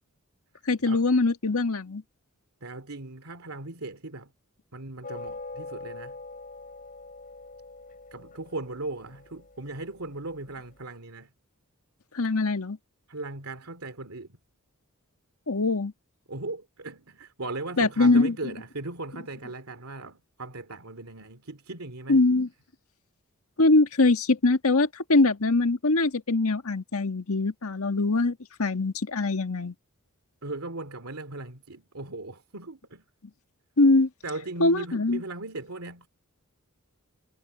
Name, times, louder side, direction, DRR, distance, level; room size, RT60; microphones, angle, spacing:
voice 1, 0.7-2.0 12.1-12.8 15.5-15.9 17.8-18.3 22.1-22.5 23.6-29.7 33.8-34.1 34.6-35.2, left 3 dB, 75° left, 1.6 m, -22 dB
voice 2, 2.6-4.3 4.7-6.1 8.1-11.3 13.1-14.4 16.3-22.2 30.4-33.0 34.2-36.1, right 2 dB, 70° right, 2.7 m, -38 dB
sound 1, 5.0-10.5, left 3 dB, 40° left, 7.2 m, -43 dB
head